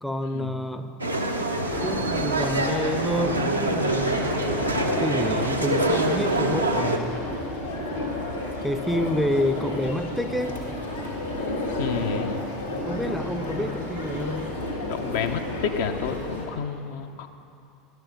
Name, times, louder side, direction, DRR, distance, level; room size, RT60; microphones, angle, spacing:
voice 1, 0.0-0.9 1.8-4.3 5.0-7.2 8.6-10.5 12.9-14.5, left 1 dB, ahead, 8 dB, 0.5 m, -28 dB
sound 1, 1.0-7.0, right 2 dB, 90° right, 0.6 m, -25 dB
sound 2, 1.7-16.5, left 1 dB, 90° left, 1.7 m, -32 dB
voice 2, 11.8-12.4 14.9-17.3, left 7 dB, 60° left, 6 dB, 0.6 m, -30 dB
11.0 x 6.3 x 6.4 m, 2.7 s
figure-of-eight pair, 75°, 0 cm